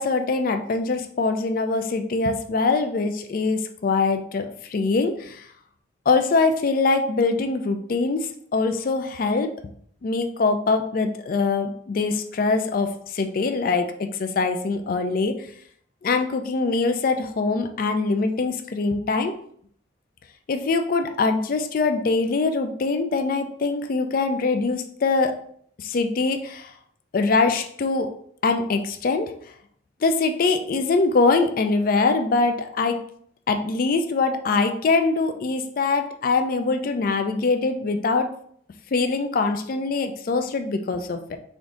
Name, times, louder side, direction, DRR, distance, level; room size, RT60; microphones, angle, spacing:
voice 1, 0.0-5.5 6.1-9.5 10.0-15.5 16.0-19.4 20.5-25.4 25.8-26.7 27.1-28.1 28.4-29.3 30.0-33.0 33.5-38.3 38.9-41.4, left 3 dB, 45° left, 7 dB, 0.3 m, -23 dB
3.4 x 2.6 x 3.7 m, 0.63 s
head